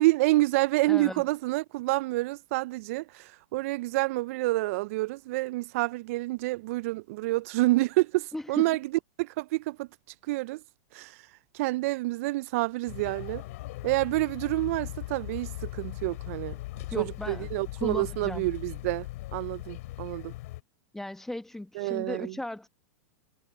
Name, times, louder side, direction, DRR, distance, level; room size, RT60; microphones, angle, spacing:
voice 1, 0.0-8.8 9.2-9.9 10.3-10.6 10.9-11.3 11.5-13.4 13.8-16.6 16.9-20.3 21.8-22.3, right 20 dB, 60° right, 0.4 m, -28 dB
voice 2, 0.9-1.2 8.3-8.7 16.9-17.5 17.8-18.5 20.9-22.7, left 1 dB, 5° left, 1.1 m, -36 dB
sound 1, 12.9-20.6, left 18 dB, 65° left, 3.5 m, -39 dB
hypercardioid pair, 110°, 9 cm